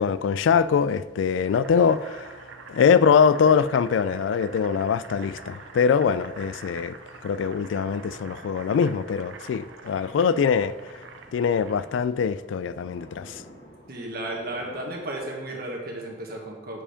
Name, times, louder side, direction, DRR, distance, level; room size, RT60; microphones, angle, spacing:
voice 1, 0.0-2.3 2.7-7.0 7.2-10.7 11.3-13.4, left 6 dB, 85° left, 0.3 m, -23 dB
Boiling, 1.4-12.0, right 4 dB, 85° right, 0.7 m, -45 dB
sound 1, 8.6-15.2, equal, 70° left, 2.5 m, -51 dB
voice 2, 13.9-16.8, right 1 dB, 55° right, 1.4 m, -34 dB
7.4 x 4.9 x 5.0 m
head